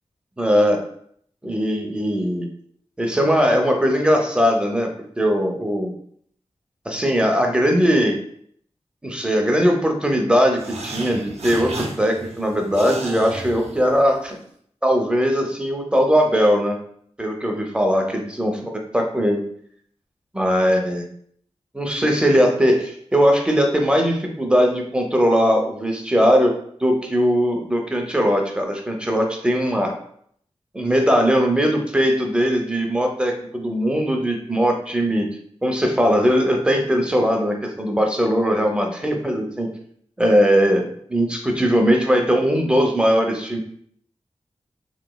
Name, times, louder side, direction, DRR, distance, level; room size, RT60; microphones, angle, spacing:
voice 1, 0.4-0.8 1.4-2.5 3.0-4.9 5.2-5.9 6.9-8.2 9.0-14.4 14.8-16.8 17.2-19.4 20.3-21.0 21.7-26.5 26.8-29.9 30.7-35.3 35.6-39.7 40.2-43.6, equal, 10° right, 2 dB, 0.5 m, -19 dB
sound 1, 10.6-14.3, right 2 dB, 70° right, 0.5 m, -34 dB
3.3 x 3.0 x 2.2 m, 0.64 s
wide cardioid pair, 95°, 11 cm